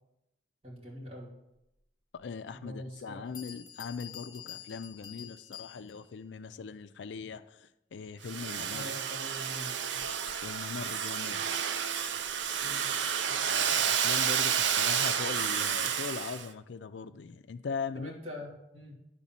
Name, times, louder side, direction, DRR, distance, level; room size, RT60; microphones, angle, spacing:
voice 1, 0.6-1.4 2.5-3.2 8.7-10.0 12.6-12.9 13.3-13.5 17.9-18.9, left 1 dB, 35° right, -5 dB, 2.8 m, -44 dB
voice 2, 2.1-8.8 10.4-11.5 13.5-18.1, left 5 dB, 75° left, 12 dB, 0.4 m, -40 dB
Bell, 2.2-2.3 3.0-3.1 3.3-6.2, left 9 dB, 25° left, 0.9 m, -47 dB
Domestic sounds home sounds, 8.2-16.5, right 8 dB, 85° right, 0.6 m, -30 dB
9.9 x 4.1 x 7.3 m, 0.87 s
head